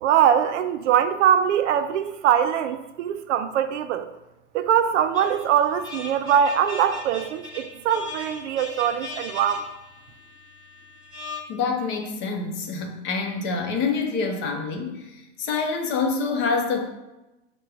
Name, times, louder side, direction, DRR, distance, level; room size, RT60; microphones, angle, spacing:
voice 1, 0.0-4.1 4.5-9.6, right 9 dB, 80° right, 9 dB, 0.5 m, -22 dB
sound 1, 5.1-11.4, left 2 dB, 10° left, 1.2 m, -39 dB
voice 2, 11.5-16.9, left 4 dB, 35° left, 3 dB, 0.6 m, -26 dB
4.5 x 2.2 x 4.7 m, 1.0 s
supercardioid pair, 135°, 35 cm